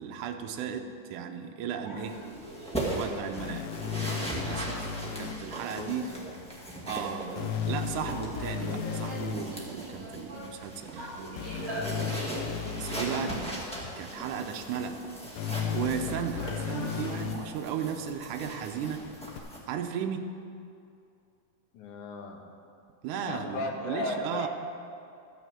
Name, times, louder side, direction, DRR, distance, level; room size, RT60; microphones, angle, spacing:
voice 1, 0.0-2.2 2.9-3.7 4.3-6.1 6.9-11.9 12.7-13.5 14.0-15.0 15.7-19.0 19.7-20.3 23.0-24.5, right 7 dB, 75° right, 5 dB, 2.2 m, -35 dB
sound 1, 1.8-2.9 7.9-10.6 10.9-12.7 16.2-17.9, right 1 dB, 35° right, 3.6 m, -42 dB
sound 2, 2.0-19.6, right 1 dB, 5° left, 1.1 m, -39 dB
sound 3, 3.4-5.3 7.4-9.4 11.4-13.3 15.4-17.4 19.4-19.5, left 7 dB, 90° left, 2.4 m, -34 dB
voice 2, 5.7-6.4 12.6-12.8 21.7-22.4 23.3-24.5, left 2 dB, 75° left, 1 dB, 2.7 m, -36 dB
13.0 x 6.5 x 7.6 m, 2.6 s
omnidirectional pair, 3.7 m